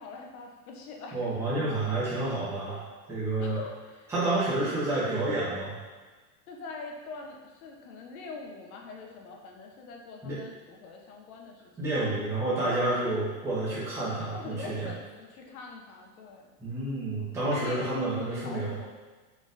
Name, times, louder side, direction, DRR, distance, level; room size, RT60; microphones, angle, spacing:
voice 1, 0.0-1.3 3.4-4.1 4.4-4.5 6.5-11.6 14.3-16.5 17.5-18.9, left 3 dB, 65° left, 1 dB, 0.8 m, -43 dB
voice 2, 1.1-2.8 3.1-3.6 4.1-5.8 10.2-10.4 11.8-14.9 16.6-18.8, right 2 dB, 5° right, -11 dB, 0.8 m, -29 dB
4.0 x 3.8 x 2.5 m, 1.3 s
supercardioid pair, 170°, 46 cm